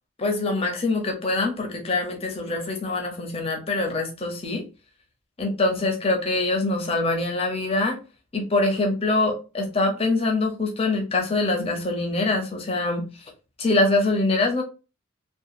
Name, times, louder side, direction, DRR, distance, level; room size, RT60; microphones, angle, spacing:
voice 1, 0.2-4.6 5.4-8.0 8.3-13.3 13.6-14.6, left 2 dB, 30° left, 2 dB, 0.6 m, -24 dB
2.8 x 2.2 x 2.4 m, 0.31 s
head